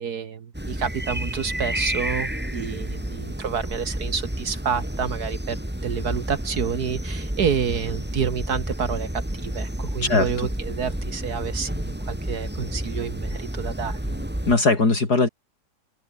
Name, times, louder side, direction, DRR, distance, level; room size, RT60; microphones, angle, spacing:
voice 1, 0.0-5.6 5.8-14.2, right 7 dB, 65° right, 1.9 m, -29 dB
sound 1, 0.5-14.6, right 1 dB, 5° right, 2.3 m, -30 dB
voice 2, 10.0-10.5 14.5-15.3, left 3 dB, 65° left, 4.3 m, -20 dB
open air
omnidirectional pair, 1.8 m